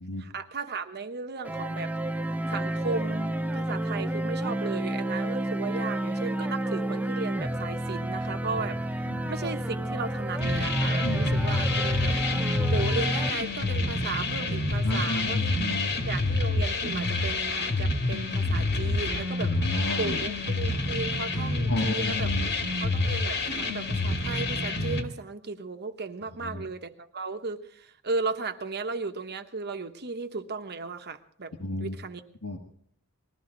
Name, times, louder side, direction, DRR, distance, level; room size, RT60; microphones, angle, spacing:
voice 1, 0.2-1.9 2.5-12.1 12.7-15.6 16.1-19.5 20.0-22.3 22.8-31.5 31.8-32.2, right 4 dB, 50° right, 7 dB, 1.2 m, -35 dB
sound 1, 1.4-13.3, right 1 dB, 5° right, 0.5 m, -30 dB
sound 2, 10.4-25.0, left 2 dB, 50° left, 1.7 m, -28 dB
voice 2, 14.8-16.1 19.4-20.2 21.6-22.5 26.4-26.6 31.6-32.0 32.4-32.6, left 1 dB, 85° left, 2 dB, 1.8 m, -32 dB
20.0 x 13.5 x 3.9 m, 0.63 s
head